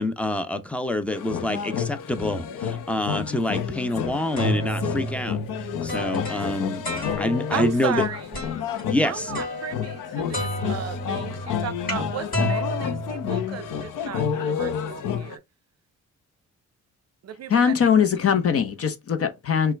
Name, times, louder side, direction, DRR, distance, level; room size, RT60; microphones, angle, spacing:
voice 1, 0.0-5.4 5.8-6.8 7.2-8.0 8.9-9.3, left 1 dB, 5° left, 0.6 m, -26 dB
sound 1, 1.1-15.4, left 8 dB, 85° left, 0.7 m, -30 dB
sound 2, 4.0-7.6 8.3-8.8 9.3-10.1 10.3-13.8, equal, 30° left, 2.2 m, -31 dB
voice 2, 7.5-8.3 9.0-15.4 17.2-17.8, right 9 dB, 55° right, 0.6 m, -34 dB
voice 3, 17.5-19.7, left 7 dB, 50° left, 0.9 m, -21 dB
5.6 x 2.4 x 3.2 m
cardioid pair, 100°, 31 cm